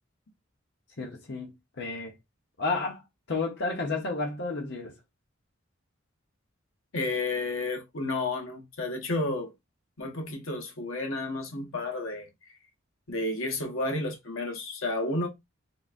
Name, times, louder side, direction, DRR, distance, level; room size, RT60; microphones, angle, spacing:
voice 1, 1.0-2.1 2.6-3.0 3.3-4.9, left 3 dB, 60° left, 0.8 m, -31 dB
voice 2, 6.9-9.5 10.0-12.3 13.1-15.3, left 2 dB, 85° left, 1.0 m, -31 dB
3.9 x 3.3 x 2.5 m
head